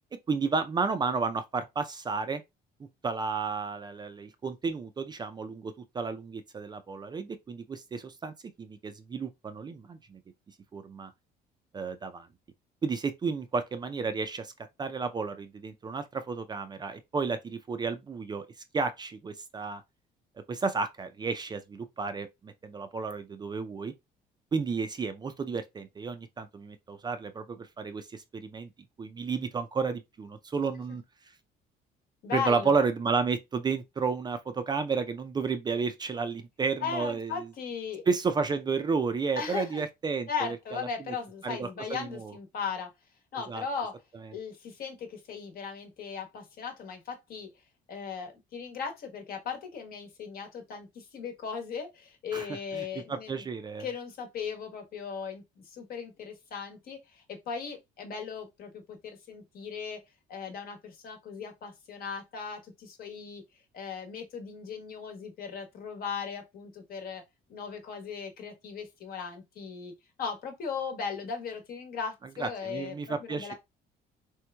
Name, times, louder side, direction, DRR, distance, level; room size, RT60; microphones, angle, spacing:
voice 1, 0.3-2.4 3.0-10.2 10.7-11.1 11.7-12.3 12.8-14.5 14.8-18.5 18.7-19.8 20.5-23.9 24.5-28.7 29.0-31.0 32.3-37.5 38.1-40.9 41.4-42.3 43.5-43.6 52.3-53.9 72.4-73.5, right 4 dB, 25° right, 0.4 m, -32 dB
voice 2, 32.2-32.7 36.8-38.0 39.3-39.8 40.3-42.9 43.3-44.0 44.3-47.5 47.9-53.5 53.8-60.0 60.3-63.4 63.7-67.2 67.5-69.9 70.2-73.5, left 6 dB, 60° left, 1.0 m, -37 dB
3.3 x 3.0 x 2.2 m
cardioid pair, 110°, 17 cm